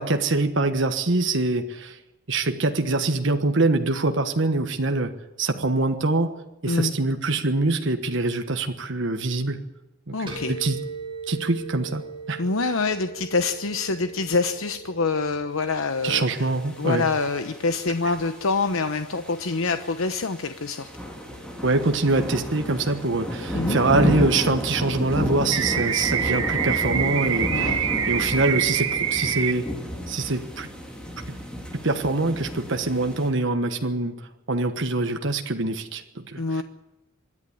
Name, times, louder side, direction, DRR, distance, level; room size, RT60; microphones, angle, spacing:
voice 1, 0.0-2.0 2.3-5.1 5.4-6.3 6.6-9.6 10.1-10.8 11.3-12.0 12.3-12.4 16.0-17.1 21.6-29.7 30.1-30.7 31.8-34.1 34.5-36.6, right 2 dB, 60° right, 5 dB, 1.4 m, -24 dB
voice 2, 10.1-10.6 12.4-16.5 16.8-20.9 23.5-23.8 27.5-27.8 36.4-36.6, left 4 dB, 80° left, 9 dB, 0.9 m, -26 dB
sound 1, 10.3-27.6, right 4 dB, 25° right, 6.0 m, -43 dB
sound 2, 16.1-33.3, equal, 5° left, 3.4 m, -32 dB
sound 3, 25.5-29.5, right 8 dB, 90° right, 1.5 m, -25 dB
25.0 x 11.0 x 10.0 m, 1.0 s
head